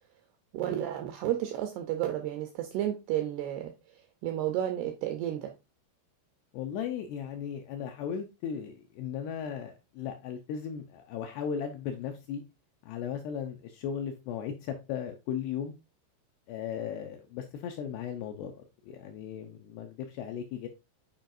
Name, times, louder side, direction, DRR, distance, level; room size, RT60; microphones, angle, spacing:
voice 1, 0.5-3.7 4.2-5.5, right 12 dB, 90° right, 2.3 m, -32 dB
voice 2, 6.5-12.4 12.8-15.7 16.5-18.5 18.8-20.7, left 8 dB, 85° left, 2.4 m, -36 dB
9.0 x 4.7 x 2.6 m
omnidirectional pair, 5.4 m